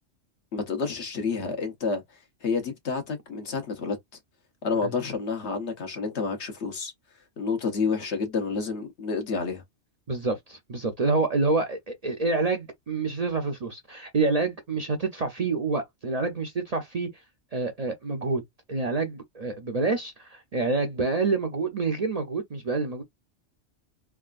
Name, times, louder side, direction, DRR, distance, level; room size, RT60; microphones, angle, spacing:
voice 1, 0.5-2.0 2.4-4.0 4.6-6.9 7.4-9.6, left 4 dB, 70° left, 1.3 m, -29 dB
voice 2, 10.1-17.1 17.5-18.4 18.7-23.0, right 3 dB, 45° right, 0.5 m, -27 dB
3.5 x 2.3 x 2.4 m
omnidirectional pair, 1.2 m